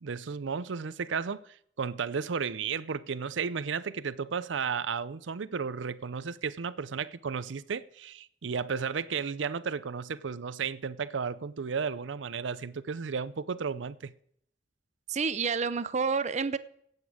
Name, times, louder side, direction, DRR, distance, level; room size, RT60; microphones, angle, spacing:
voice 1, 0.0-14.1, right 6 dB, 85° right, 0.5 m, -33 dB
voice 2, 15.1-16.6, right 5 dB, 40° right, 0.6 m, -29 dB
16.5 x 8.2 x 4.9 m
head